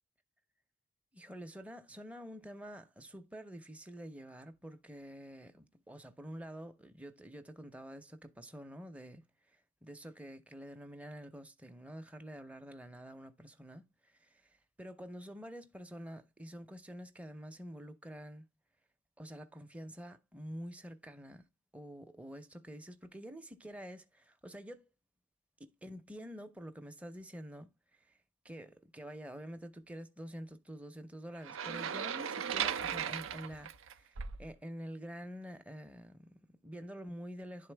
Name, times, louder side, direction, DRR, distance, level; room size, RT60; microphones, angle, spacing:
voice 1, 1.1-9.2 9.5-18.4 19.2-21.4 21.7-24.9 25.6-28.2 28.4-37.7, equal, 5° right, 0.6 m, -48 dB
sound 1, 31.4-34.5, right 8 dB, 85° right, 0.6 m, -37 dB
10.5 x 3.8 x 3.3 m
head